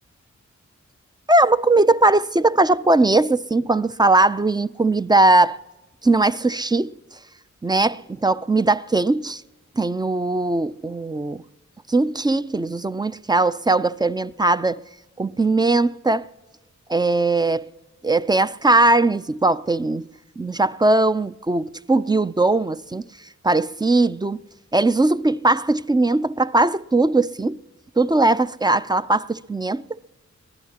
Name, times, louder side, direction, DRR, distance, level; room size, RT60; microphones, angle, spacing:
voice 1, 1.3-5.6 6.0-6.9 7.6-9.4 9.8-11.4 11.9-14.8 15.2-16.3 16.9-17.7 18.0-20.1 20.4-23.0 23.4-24.4 24.7-27.6 28.0-29.8, right 2 dB, 15° right, 0.4 m, -19 dB
22.5 x 15.5 x 2.9 m
cardioid pair, 50°, 29 cm